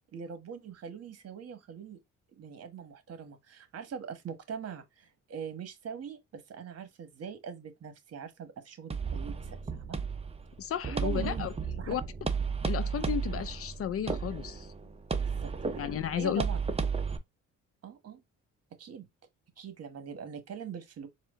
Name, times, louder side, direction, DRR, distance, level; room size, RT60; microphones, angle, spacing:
voice 1, 0.1-2.0 2.3-10.0 10.8-11.5 11.8-12.0 15.2-15.9 16.2-16.6 17.8-18.2 18.8-19.1 19.6-21.1, right 7 dB, 55° right, 1.3 m, -42 dB
sound 1, 8.9-17.2, right 5 dB, 20° right, 0.8 m, -33 dB
voice 2, 10.6-11.5 11.9-12.0 12.6-14.7 15.8-16.4, left 9 dB, 50° left, 0.5 m, -33 dB
4.3 x 2.2 x 3.7 m
cardioid pair, 90°, 30 cm